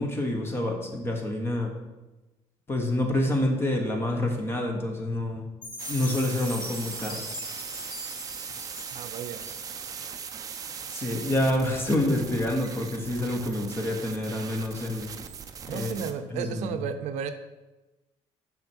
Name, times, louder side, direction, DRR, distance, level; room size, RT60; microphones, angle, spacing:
voice 1, 0.0-1.7 2.7-5.5 5.9-7.2 10.9-15.1 15.7-15.9 16.3-16.8, left 1 dB, 20° left, 2 dB, 1.3 m, -27 dB
Chime, 5.6-9.9, left 2 dB, 40° left, 2.2 m, -40 dB
sound 1, 5.8-16.1, right 7 dB, 30° right, 0.6 m, -39 dB
voice 2, 8.9-9.4 15.7-17.3, right 7 dB, 75° right, 9 dB, 0.7 m, -33 dB
9.5 x 6.0 x 4.6 m, 1.1 s
cardioid pair, 165°, 12 cm